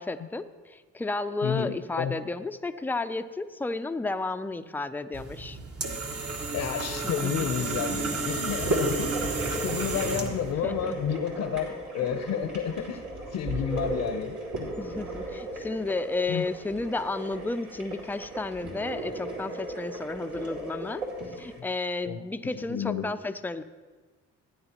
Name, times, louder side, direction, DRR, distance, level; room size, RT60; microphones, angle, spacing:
voice 1, 0.0-5.6 7.0-7.5 9.9-10.1 10.6-11.0 14.8-21.0 21.4-23.6, left 3 dB, 5° left, 10 dB, 0.4 m, -32 dB
voice 2, 1.4-2.2 6.5-9.3 9.6-13.0 13.3-14.3 14.6-14.7 16.3-16.4 22.0-22.2 22.7-23.1, left 8 dB, 75° left, 8 dB, 0.8 m, -30 dB
sound 1, 5.1-10.5, right 3 dB, 50° right, 1.5 m, -32 dB
sound 2, 8.5-21.6, right 1 dB, 80° right, 2.8 m, -36 dB
16.0 x 9.5 x 2.9 m, 1.4 s
cardioid pair, 90°, 30 cm